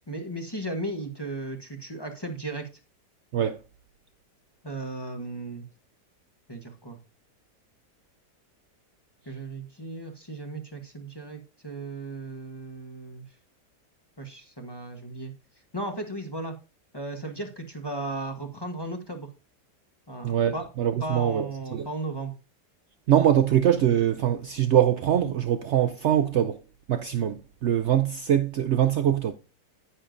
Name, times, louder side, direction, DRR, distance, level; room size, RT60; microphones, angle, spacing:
voice 1, 0.1-2.7 4.6-5.7 6.5-7.0 9.3-13.3 14.2-15.3 15.7-16.5 16.9-19.3 20.1-20.7 21.0-22.4, right 2 dB, 20° left, 0.9 m, -35 dB
voice 2, 20.2-21.9 23.1-26.6 26.9-29.3, right 10 dB, 90° right, 0.6 m, -23 dB
9.9 x 9.0 x 2.6 m
omnidirectional pair, 1.8 m